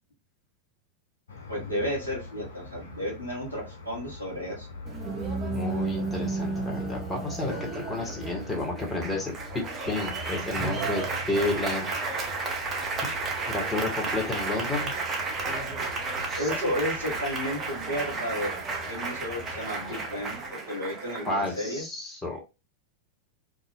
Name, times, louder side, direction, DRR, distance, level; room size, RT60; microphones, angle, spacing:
sound 1, 1.3-20.5, left 2 dB, 70° left, 0.6 m, -43 dB
voice 1, 1.5-4.7 16.4-21.8, equal, 90° left, -4 dB, 1.0 m, -32 dB
Applause, 4.9-21.8, right 3 dB, 25° right, 0.6 m, -33 dB
voice 2, 5.5-11.9 13.5-14.9 16.2-16.6 21.3-22.4, left 2 dB, 10° left, 0 dB, 1.0 m, -31 dB
2.4 x 2.0 x 3.3 m, 0.28 s
figure-of-eight pair, 90°, 0 cm